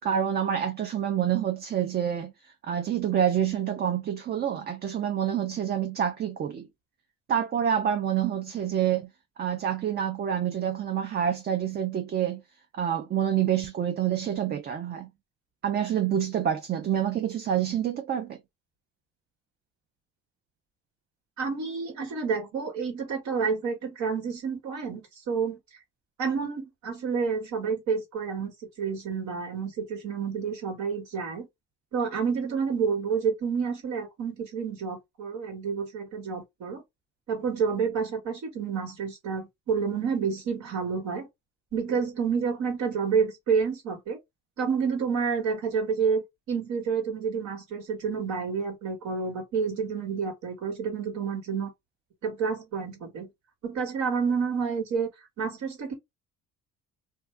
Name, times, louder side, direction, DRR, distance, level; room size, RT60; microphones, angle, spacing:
voice 1, 0.0-6.7 7.3-9.1 9.4-12.4 12.7-15.1 15.6-18.4, right 9 dB, 35° right, 0.4 m, -27 dB
voice 2, 21.4-25.6 26.2-28.5 28.8-31.5 31.9-36.8 37.3-41.3 41.7-44.2 44.6-51.7 52.2-53.3 53.6-55.1 55.4-55.9, right 6 dB, 70° right, 1.7 m, -29 dB
2.6 x 2.2 x 3.2 m
cardioid pair, 130°, 30 cm